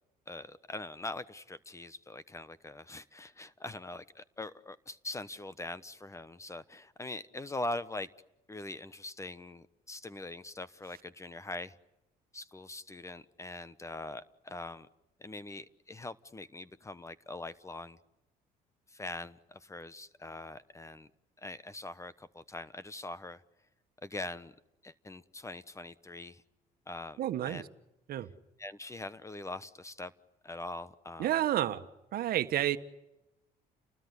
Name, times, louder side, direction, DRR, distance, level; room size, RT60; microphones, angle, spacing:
voice 1, 0.3-8.1 8.5-11.7 12.3-14.9 15.2-18.0 18.9-21.1 21.4-23.4 24.0-24.5 24.8-26.4 26.9-27.2 27.4-27.6 28.2-28.3 28.6-30.1 30.4-31.4, left 2 dB, 15° left, 16 dB, 1.0 m, -42 dB
voice 2, 27.2-27.6 28.1-28.3 31.2-31.8 32.1-32.8, right 12 dB, 65° right, 10 dB, 1.5 m, -30 dB
30.0 x 20.0 x 9.9 m, 0.94 s
cardioid pair, 110°, 17 cm